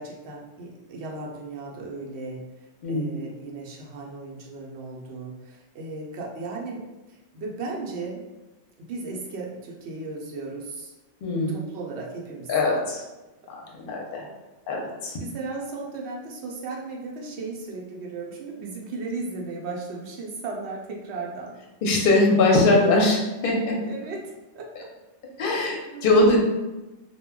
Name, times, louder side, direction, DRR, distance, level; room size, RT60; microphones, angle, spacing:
voice 1, 0.0-8.2 8.8-10.9 11.5-12.5 15.2-21.5 23.8-24.9 25.9-26.4, right 3 dB, 70° right, -2 dB, 0.8 m, -36 dB
voice 2, 2.8-3.1 11.2-11.5 12.5-13.0 13.7-14.3 14.7-15.2 21.8-23.8 25.4-26.4, left 2 dB, 55° left, -2 dB, 0.7 m, -21 dB
2.2 x 2.1 x 3.5 m, 1.1 s
omnidirectional pair, 1.2 m